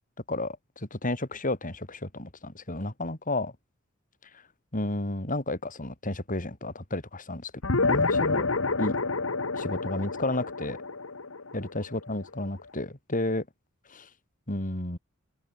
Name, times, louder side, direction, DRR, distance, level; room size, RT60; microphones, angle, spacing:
voice 1, 0.3-3.5 4.7-7.5 7.8-8.5 8.8-9.0 9.5-10.8 11.5-13.5 13.9-14.1 14.5-15.0, left 2 dB, 40° left, 4.0 m, -32 dB
sound 1, 7.6-12.4, left 3 dB, 70° left, 1.7 m, -28 dB
open air
head